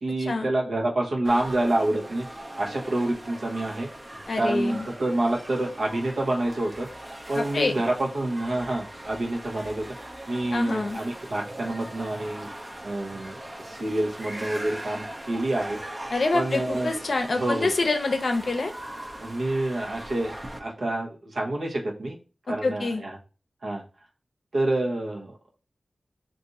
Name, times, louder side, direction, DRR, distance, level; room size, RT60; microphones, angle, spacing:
voice 1, 0.0-2.3 2.6-3.9 4.4-6.9 7.3-9.8 10.3-12.5 12.8-15.8 16.3-16.9 17.3-17.7 19.2-22.2 22.5-23.2 23.6-23.8 24.5-25.4, right 1 dB, 75° right, -1 dB, 0.9 m, -27 dB
sound 1, 1.2-20.6, right 1 dB, 25° right, 0.5 m, -40 dB
voice 2, 4.3-4.9 7.3-7.7 10.5-11.0 16.1-18.7 22.5-23.0, left 3 dB, 65° left, 5 dB, 0.6 m, -26 dB
2.5 x 2.5 x 4.1 m, 0.33 s
wide cardioid pair, 80°, 0 cm